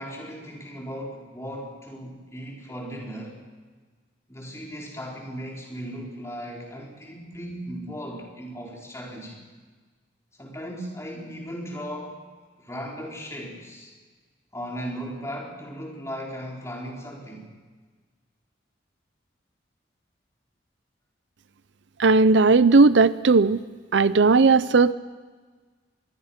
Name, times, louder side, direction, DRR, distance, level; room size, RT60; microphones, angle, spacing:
voice 1, 0.0-3.4 4.3-9.4 10.3-12.2 12.6-13.9 14.5-17.5, equal, 15° left, -2 dB, 4.5 m, -37 dB
voice 2, 22.0-23.6 23.9-24.9, right 4 dB, 70° right, 16 dB, 0.6 m, -17 dB
25.0 x 21.5 x 5.8 m, 1.4 s
head